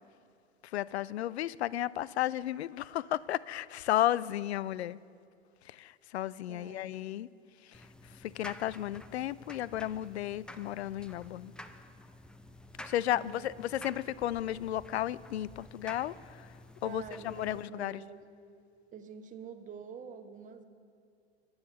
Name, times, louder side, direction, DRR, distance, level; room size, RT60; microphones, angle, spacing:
voice 1, 0.6-5.0 5.6-7.3 7.6-7.8 8.2-11.5 12.8-16.5 16.8-18.0, left 13 dB, 70° left, 20 dB, 0.5 m, -33 dB
voice 2, 6.5-7.2 13.1-13.5 16.8-18.2 18.9-20.6, right 6 dB, 25° right, 7 dB, 1.1 m, -47 dB
sound 1, 7.7-17.6, left 1 dB, 5° left, 0.5 m, -51 dB
23.0 x 8.0 x 5.5 m, 2.3 s
figure-of-eight pair, 90°, 34 cm